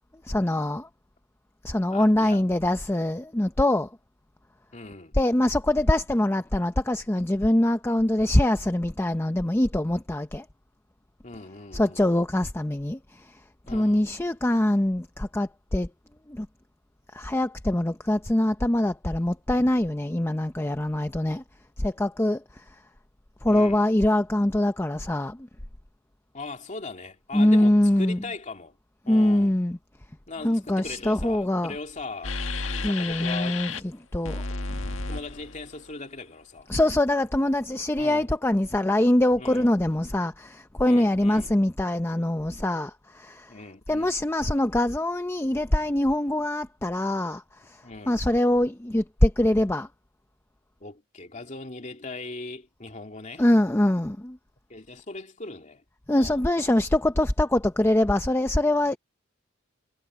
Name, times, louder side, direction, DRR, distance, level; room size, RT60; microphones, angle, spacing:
voice 1, 0.2-0.9 1.6-3.9 5.1-10.5 11.7-13.4 13.7-15.9 16.3-16.5 17.1-21.4 21.8-22.8 23.4-25.5 27.3-28.2 29.1-29.8 30.4-31.7 32.7-33.7 34.1-34.5 34.8-34.9 36.7-43.5 43.9-49.9 53.4-54.4 56.1-59.0, left 1 dB, 10° left, 0.6 m, -23 dB
voice 2, 1.9-2.4 4.7-5.2 11.2-12.0 13.7-14.0 23.5-23.9 26.3-28.8 29.0-29.6 30.3-32.4 32.8-33.7 35.1-36.7 38.0-38.3 39.4-39.7 40.8-41.5 43.5-44.2 47.8-48.2 50.8-53.4 54.7-55.8 56.1-56.4, left 3 dB, 40° left, 2.7 m, -39 dB
sound 1, 32.2-33.8 34.2-35.9, left 3 dB, 75° left, 1.8 m, -32 dB
head